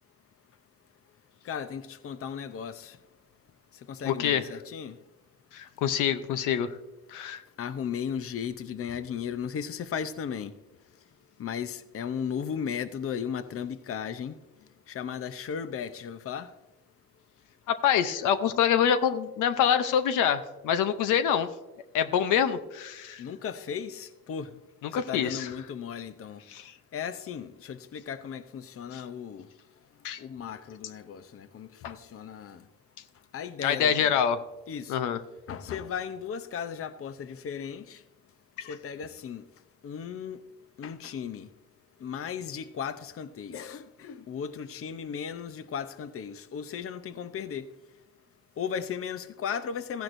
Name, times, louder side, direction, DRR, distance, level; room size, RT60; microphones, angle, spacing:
voice 1, 1.5-3.0 3.9-5.0 7.6-10.5 11.4-14.4 14.9-16.5 23.2-24.5 24.9-26.4 26.9-29.5 30.2-32.6 33.3-34.1 34.7-35.0 35.5-38.0 38.7-39.4 39.8-40.4 40.8-41.5 42.0-47.7 48.6-50.0, left 7 dB, 50° left, 0.7 m, -36 dB
voice 2, 4.0-4.4 5.5-6.7 7.1-7.4 17.7-21.5 21.9-23.2 24.8-25.5 26.5-26.7 28.9-29.0 30.0-30.2 31.8-32.0 33.6-34.4 34.9-35.2 38.6-38.7, left 8 dB, 90° left, 0.7 m, -26 dB
15.0 x 10.5 x 2.6 m
cardioid pair, 90°, 30 cm